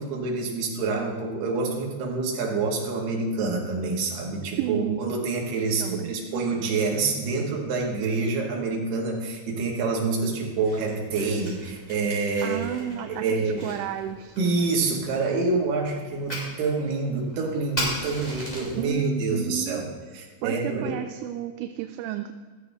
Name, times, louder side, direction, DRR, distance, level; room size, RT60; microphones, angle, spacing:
voice 1, 0.0-13.8 14.4-19.8 20.1-21.0, right 3 dB, 60° right, -1 dB, 3.9 m, -27 dB
voice 2, 4.6-5.0 5.8-6.1 12.4-14.4 18.8-19.8 20.4-22.3, right 12 dB, 80° right, 7 dB, 2.9 m, -32 dB
Fire, 10.5-18.9, equal, 10° left, 4.9 m, -38 dB
15.0 x 14.5 x 3.7 m, 1.5 s
omnidirectional pair, 5.4 m